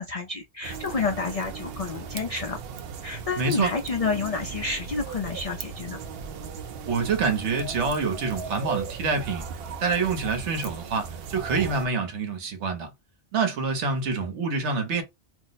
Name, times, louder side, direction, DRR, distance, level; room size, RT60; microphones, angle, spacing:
voice 1, 0.0-2.6 3.0-6.0, left 4 dB, 55° left, 0.4 m, -29 dB
sound 1, 0.6-11.9, right 6 dB, 65° right, 0.7 m, -37 dB
voice 2, 3.4-3.7 6.9-9.5 9.8-12.9 13.3-15.0, right 4 dB, 80° right, 1.2 m, -26 dB
2.6 x 2.0 x 3.9 m
omnidirectional pair, 1.2 m